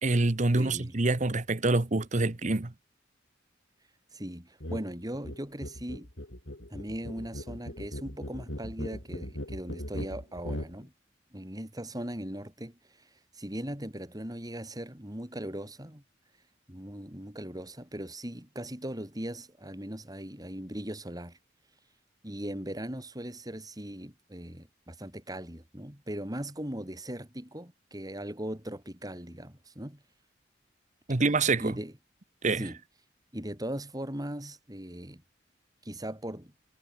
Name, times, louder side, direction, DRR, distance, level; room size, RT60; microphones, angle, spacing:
voice 1, 0.0-2.7 31.1-31.7 32.4-32.6, right 2 dB, 40° right, 1.0 m, -26 dB
voice 2, 0.6-1.0 4.1-6.1 6.7-10.9 11.3-13.1 13.3-16.0 16.7-21.4 22.2-30.0 31.6-31.9 32.6-32.8 33.3-35.2 35.8-36.5, right 1 dB, 20° right, 4.9 m, -39 dB
sound 1, 4.6-4.9 5.1-10.7, left 1 dB, 75° left, 4.8 m, -39 dB
head